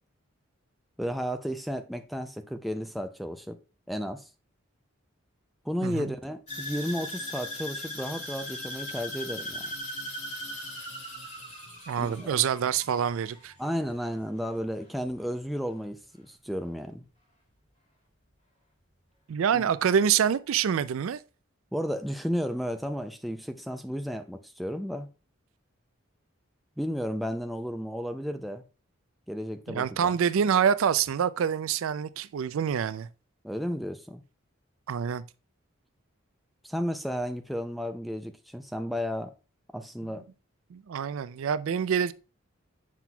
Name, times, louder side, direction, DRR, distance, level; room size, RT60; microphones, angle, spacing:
voice 1, 1.0-3.6 3.9-4.3 5.6-9.7 12.0-12.4 13.6-17.0 19.5-19.6 21.7-25.1 26.8-28.6 29.3-30.1 33.4-34.2 36.6-39.3 39.7-40.3, equal, ahead, 0.3 m, -33 dB
sound 1, 6.5-14.7 15.0-15.4 15.9-16.0, left 1 dB, 35° left, 2.7 m, -39 dB
voice 2, 11.9-13.5 19.3-21.2 29.7-33.1 34.9-35.2 40.7-42.1, right 8 dB, 75° right, 0.4 m, -26 dB
7.4 x 5.9 x 2.3 m
head